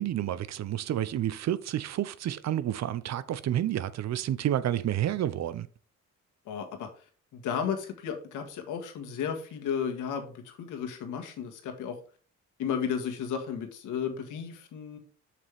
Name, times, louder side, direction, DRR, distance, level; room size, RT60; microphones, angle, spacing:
voice 1, 0.0-5.7, right 11 dB, 60° right, 0.7 m, -30 dB
voice 2, 6.5-6.9 7.3-12.0 12.6-15.0, left 7 dB, 85° left, 1.7 m, -33 dB
7.2 x 6.7 x 3.5 m
cardioid pair, 90°, 30 cm